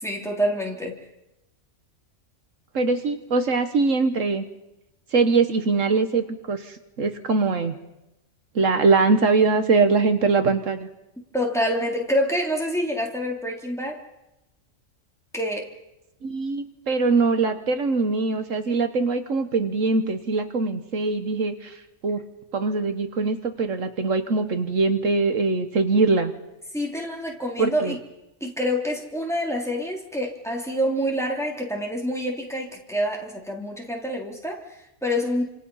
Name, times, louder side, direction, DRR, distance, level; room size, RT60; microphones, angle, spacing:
voice 1, 0.0-1.0 11.3-14.0 15.3-15.7 26.7-28.0 28.4-34.6 35.0-35.4, equal, ahead, 0 dB, 3.3 m, -27 dB
voice 2, 2.7-4.5 5.1-7.7 8.5-10.9 16.2-22.2 22.5-26.3 27.6-28.0, right 4 dB, 70° right, 8 dB, 1.6 m, -22 dB
29.0 x 26.5 x 5.7 m, 0.95 s
omnidirectional pair, 1.4 m